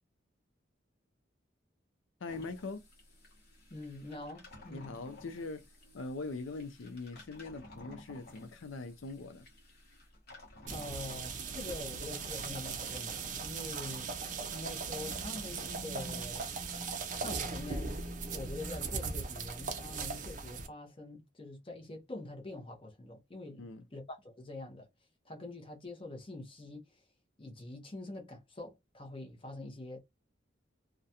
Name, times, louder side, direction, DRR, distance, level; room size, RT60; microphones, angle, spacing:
voice 1, 2.2-2.9 4.7-5.6 5.9-9.5 23.6-23.8, left 3 dB, 85° left, 0.5 m, -42 dB
sound 1, 2.3-11.8, left 1 dB, 55° left, 1.0 m, -55 dB
voice 2, 3.7-4.9 10.7-14.1 14.5-16.5 17.1-18.0 18.3-24.9 25.2-27.0 27.4-30.0, left 2 dB, 30° left, 0.6 m, -45 dB
sound 2, 10.7-20.7, right 4 dB, 40° right, 0.5 m, -39 dB
2.4 x 2.1 x 2.8 m
head